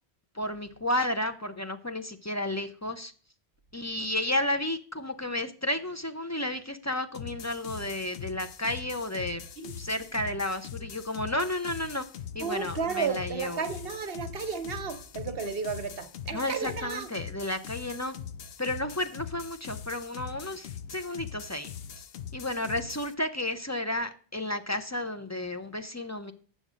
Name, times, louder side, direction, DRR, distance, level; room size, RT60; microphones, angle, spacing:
voice 1, 0.3-3.1 3.7-9.4 9.8-12.1 12.3-13.6 16.3-18.1 18.6-21.7 22.0-22.1 22.3-26.3, left 1 dB, 20° left, 0.5 m, -32 dB
sound 1, 7.1-23.1, left 8 dB, 70° left, 0.8 m, -42 dB
voice 2, 12.4-17.1, right 5 dB, 65° right, 1.1 m, -33 dB
8.2 x 6.4 x 4.9 m
omnidirectional pair, 1.1 m